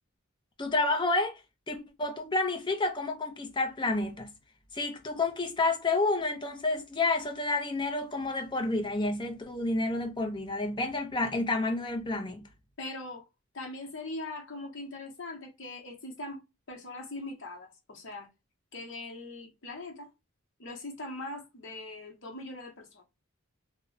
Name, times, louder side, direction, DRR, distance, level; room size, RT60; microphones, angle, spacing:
voice 1, 0.6-1.4 1.7-4.3 4.7-12.5, left 2 dB, 20° left, 0.5 m, -30 dB
voice 2, 12.8-13.3 13.5-16.4 16.7-18.3 18.7-20.1 20.6-23.0, left 2 dB, 55° left, 0.9 m, -41 dB
2.3 x 2.0 x 3.8 m
head